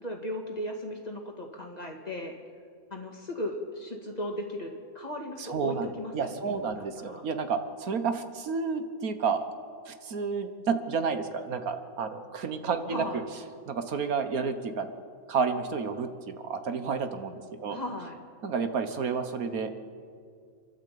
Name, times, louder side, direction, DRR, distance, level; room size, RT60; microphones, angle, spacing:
voice 1, 0.0-2.3 2.9-7.3 12.9-13.2 17.7-18.2, left 1 dB, 30° left, 1 dB, 2.4 m, -36 dB
voice 2, 5.4-5.9 6.1-9.5 9.9-13.2 13.7-14.9 15.3-17.8 18.4-19.7, right 5 dB, 85° right, 9 dB, 1.7 m, -30 dB
28.0 x 12.0 x 8.5 m, 2.2 s
omnidirectional pair, 1.5 m